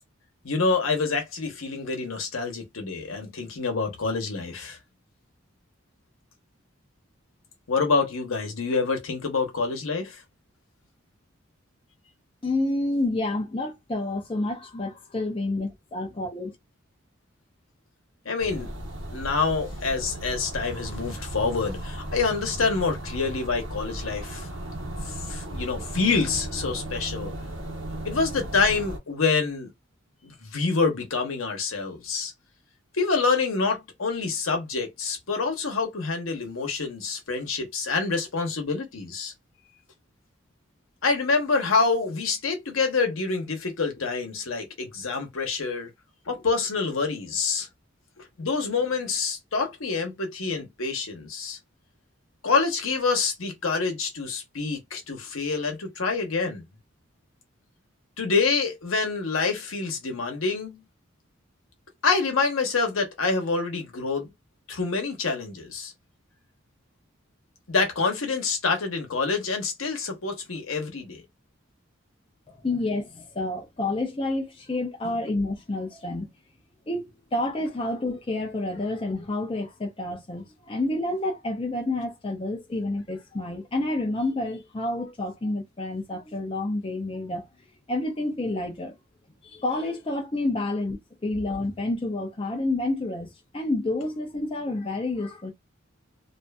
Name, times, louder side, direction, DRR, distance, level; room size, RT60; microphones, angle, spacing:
voice 1, 0.4-4.8 7.7-10.2 18.2-18.7 19.1-24.5 25.0-27.3 28.0-29.7 30.2-32.3 32.9-39.3 41.0-45.9 46.3-47.7 48.2-51.6 52.4-56.6 58.2-60.8 62.0-64.3 64.7-65.9 67.7-71.2, left 4 dB, 80° left, 0.9 m, -27 dB
voice 2, 12.4-16.6 72.5-76.3 76.9-87.5 87.9-88.9 89.4-95.5, left 2 dB, 25° left, 0.5 m, -29 dB
sound 1, 18.4-29.0, right 1 dB, 65° right, 1.0 m, -36 dB
2.6 x 2.5 x 2.2 m
head